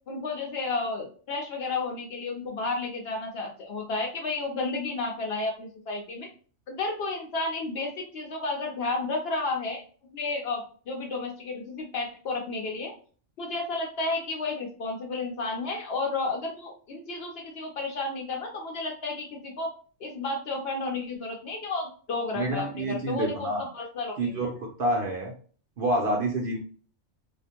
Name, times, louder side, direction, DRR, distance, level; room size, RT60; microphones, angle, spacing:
voice 1, 0.1-6.3 6.7-9.8 10.1-12.9 13.4-19.7 20.0-24.5, left 3 dB, 65° left, 0 dB, 0.7 m, -32 dB
voice 2, 22.3-23.6 24.2-25.3 25.8-26.6, right 1 dB, 60° right, 0 dB, 0.6 m, -28 dB
2.4 x 2.1 x 2.8 m, 0.42 s
omnidirectional pair, 1.3 m